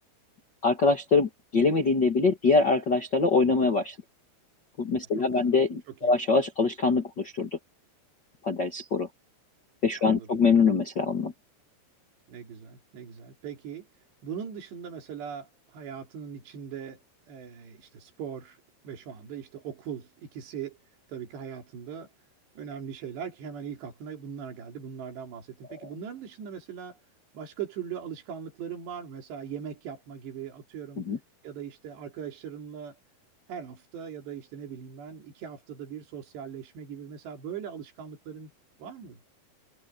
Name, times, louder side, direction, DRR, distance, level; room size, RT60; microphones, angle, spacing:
voice 1, 0.6-3.9 4.8-7.5 8.4-9.1 9.8-11.3 31.1-31.2, left 4 dB, 45° left, 1.5 m, -24 dB
voice 2, 5.2-5.5 5.9-6.1 10.2-10.3 12.3-17.0 17.3-18.6 18.8-20.8 21.1-22.1 22.6-27.0 27.3-31.0 31.4-33.0 33.5-38.5 38.8-39.2, right 8 dB, 85° right, 5.7 m, -40 dB
omnidirectional pair, 4.8 m